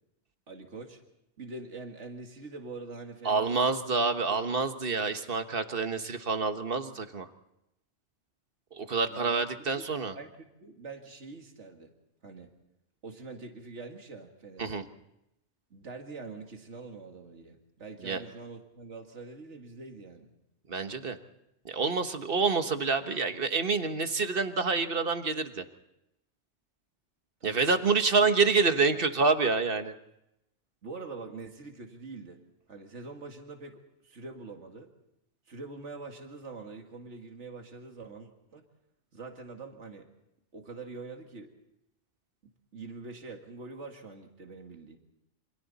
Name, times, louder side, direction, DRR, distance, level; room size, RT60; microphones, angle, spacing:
voice 1, 0.5-1.0 1.4-3.7 4.3-4.4 9.1-9.4 9.7-10.3 10.6-11.9 12.2-12.5 13.0-14.8 15.7-20.3 27.4-27.9 30.8-32.4 32.7-34.9 35.5-38.6 39.1-40.1 40.5-41.5 42.7-45.0, right 3 dB, 75° right, 3 dB, 2.4 m, -44 dB
voice 2, 3.2-7.3 8.7-10.1 14.6-14.9 18.0-18.2 20.7-21.2 21.6-25.6 27.4-29.9, right 4 dB, 50° right, 8 dB, 1.5 m, -27 dB
28.5 x 26.0 x 4.2 m, 0.85 s
omnidirectional pair, 1.2 m